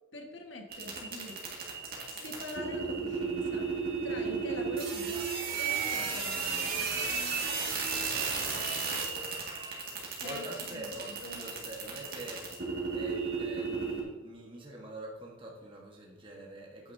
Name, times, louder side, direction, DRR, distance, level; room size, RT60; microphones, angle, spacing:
voice 1, 0.1-1.4 2.1-3.7 4.0-5.3 5.6-6.8 10.2-11.5, left 1 dB, 70° left, 2 dB, 1.5 m, -44 dB
sound 1, 0.7-14.0, right 5 dB, 50° right, 2.0 m, -34 dB
voice 2, 10.2-16.9, right 1 dB, 25° right, -2 dB, 1.3 m, -45 dB
9.2 x 9.1 x 2.7 m, 1.2 s
head